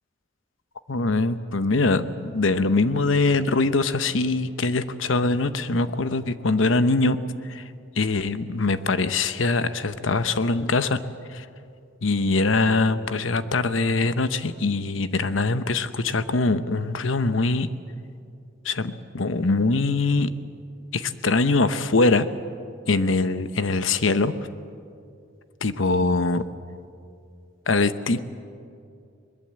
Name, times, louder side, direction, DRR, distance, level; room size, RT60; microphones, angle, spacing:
voice 1, 0.9-7.2 7.5-7.6 8.0-11.0 11.3-11.4 12.0-17.7 18.6-20.3 20.9-22.3 22.9-24.3 25.6-26.4 27.7-28.2, left 3 dB, 90° left, 12 dB, 0.9 m, -23 dB
22.0 x 21.0 x 7.7 m, 2.4 s
head